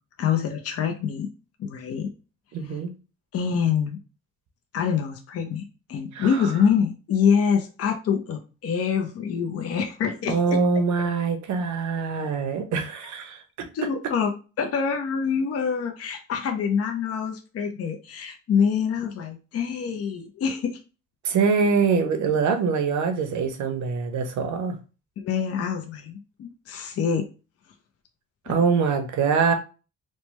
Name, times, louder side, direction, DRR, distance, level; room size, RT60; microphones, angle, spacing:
voice 1, 0.2-1.3 1.6-2.1 3.3-4.0 4.7-10.6 13.7-20.8 25.2-27.3, left 7 dB, 55° left, 0.6 m, -25 dB
voice 2, 2.5-2.9 6.1-6.5 10.3-13.4 21.2-24.8 28.5-29.5, right 5 dB, 70° right, 0.7 m, -24 dB
3.1 x 2.1 x 3.0 m
cardioid pair, 90°, 30 cm